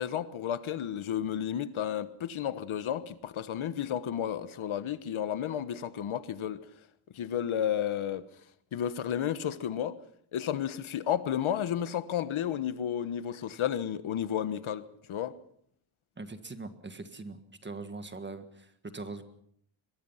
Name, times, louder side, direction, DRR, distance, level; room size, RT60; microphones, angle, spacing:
voice 1, 0.0-6.6 7.1-8.2 8.7-10.0 10.3-15.4, left 9 dB, 90° left, 1.3 m, -32 dB
voice 2, 16.2-19.2, right 3 dB, 25° right, 1.7 m, -42 dB
23.5 x 22.0 x 5.7 m
wide cardioid pair, 170°, 47 cm